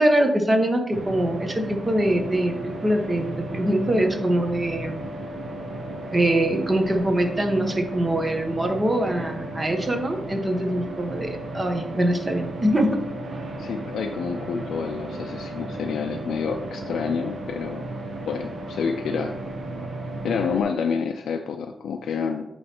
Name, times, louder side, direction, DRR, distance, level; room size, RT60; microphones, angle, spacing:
voice 1, 0.0-5.0 6.1-13.0, right 1 dB, 25° right, 4 dB, 1.0 m, -23 dB
sound 1, 0.9-20.6, right 2 dB, 60° right, 0.8 m, -34 dB
voice 2, 13.6-17.8 18.3-19.3 20.2-22.4, left 6 dB, 85° left, 4 dB, 0.4 m, -28 dB
8.6 x 3.2 x 4.3 m, 0.90 s
cardioid pair, 95°, 0 cm